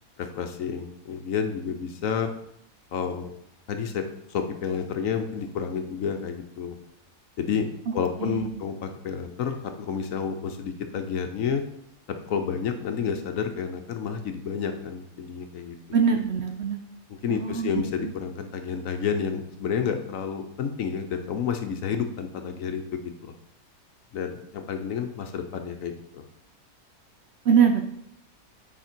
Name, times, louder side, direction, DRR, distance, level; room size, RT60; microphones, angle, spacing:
voice 1, 0.2-2.3 2.9-3.3 3.7-4.0 4.3-6.8 7.4-7.7 7.9-11.6 12.1-15.8 17.2-23.3 24.1-26.2, left 6 dB, 65° left, 6 dB, 1.1 m, -30 dB
voice 2, 15.9-16.8 17.3-18.1 27.4-27.8, right 6 dB, 55° right, 4 dB, 0.8 m, -23 dB
8.3 x 4.9 x 4.5 m, 0.74 s
omnidirectional pair, 1.6 m